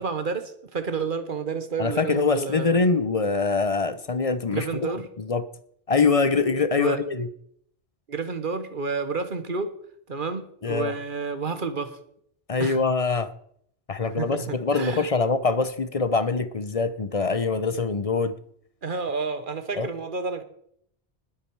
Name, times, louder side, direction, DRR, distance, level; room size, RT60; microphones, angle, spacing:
voice 1, 0.0-2.8 4.5-5.1 6.8-7.0 8.1-9.7 10.1-12.0 12.6-12.8 14.0-15.1 18.8-20.4, right 4 dB, 55° right, 10 dB, 1.4 m, -30 dB
voice 2, 1.8-4.9 5.2-5.4 5.9-7.3 10.6-10.9 12.5-13.3 13.9-18.3 19.7-19.9, left 4 dB, 35° left, 12 dB, 0.8 m, -24 dB
20.0 x 8.6 x 4.7 m, 0.69 s
omnidirectional pair, 1.1 m